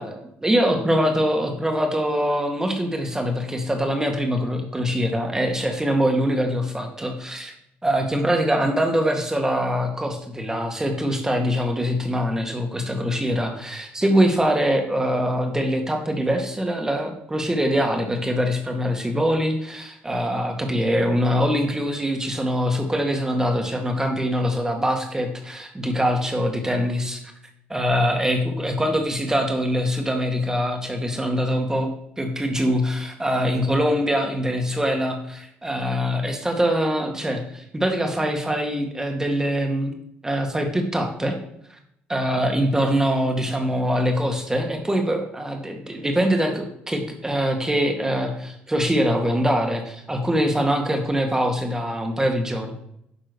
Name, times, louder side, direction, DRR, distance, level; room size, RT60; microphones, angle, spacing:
voice 1, 0.0-7.5 7.8-27.2 27.7-31.9 32.2-39.9 40.2-41.3 42.1-52.7, equal, 15° right, 3 dB, 1.9 m, -23 dB
10.5 x 3.6 x 6.3 m, 0.75 s
cardioid pair, 90°, 4 cm